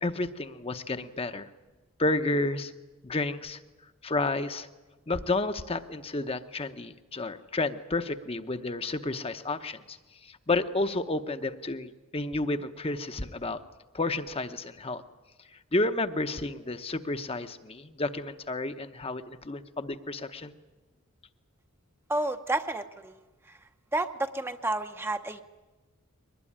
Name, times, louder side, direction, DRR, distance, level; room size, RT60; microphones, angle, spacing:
voice 1, 0.0-1.5 2.0-2.7 3.0-3.6 4.0-4.7 5.1-13.6 13.9-15.0 15.7-20.5, left 2 dB, 25° left, 9 dB, 0.8 m, -31 dB
voice 2, 22.1-23.2 23.5-23.6 23.9-25.4, right 2 dB, 10° right, 7 dB, 0.7 m, -30 dB
22.5 x 19.5 x 10.0 m, 1.2 s
head